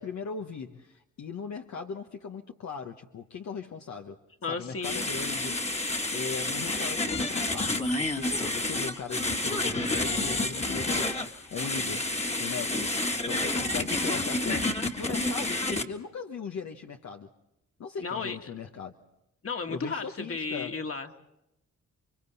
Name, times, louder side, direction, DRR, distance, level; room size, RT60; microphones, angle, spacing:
voice 1, 0.0-4.2 4.5-5.5 5.8-12.1 12.4-17.3 17.8-18.9 19.7-20.7, left 6 dB, 65° left, 3 dB, 1.3 m, -39 dB
voice 2, 4.4-5.1 18.0-18.4 19.4-21.2, left 4 dB, 50° left, 5 dB, 2.2 m, -34 dB
sound 1, 4.8-15.8, left 2 dB, 20° left, 1.8 m, -29 dB
30.0 x 24.5 x 4.1 m, 0.86 s
cardioid pair, 80°, 30 cm